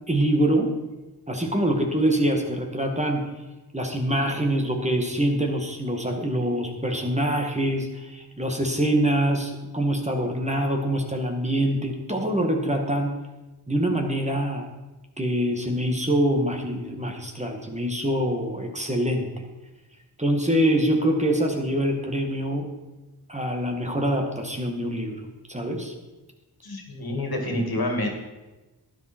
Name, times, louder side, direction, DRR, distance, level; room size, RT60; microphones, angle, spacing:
voice 1, 0.1-0.7 1.3-3.2 3.7-13.1 13.7-14.7 15.2-19.3 20.2-22.7 23.3-25.2 25.5-25.9, right 1 dB, 15° right, 2 dB, 2.0 m, -24 dB
voice 2, 26.6-28.1, left 1 dB, 65° left, 3 dB, 2.5 m, -27 dB
12.0 x 10.5 x 4.5 m, 1.1 s
cardioid pair, 60°, 40 cm